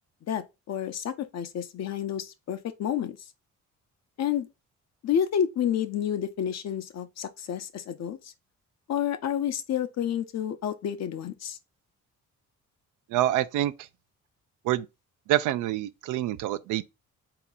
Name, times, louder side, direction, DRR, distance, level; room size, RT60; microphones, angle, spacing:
voice 1, 0.2-3.2 4.2-4.5 5.0-8.3 8.9-11.6, left 9 dB, 60° left, 0.7 m, -30 dB
voice 2, 13.1-13.7 14.6-14.9 15.3-16.8, right 13 dB, 90° right, 0.5 m, -26 dB
4.0 x 2.9 x 3.6 m
cardioid pair, 90°, 30 cm